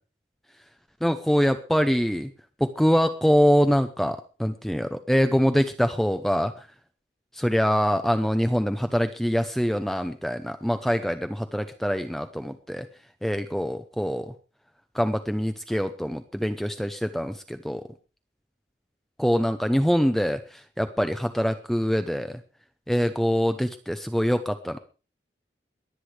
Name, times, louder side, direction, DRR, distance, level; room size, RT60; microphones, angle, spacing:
voice 1, 1.0-2.3 2.6-6.7 7.3-12.9 13.2-14.3 14.9-17.8 19.2-22.4 22.9-24.8, equal, ahead, 8 dB, 0.7 m, -24 dB
22.0 x 8.4 x 4.8 m, 0.34 s
head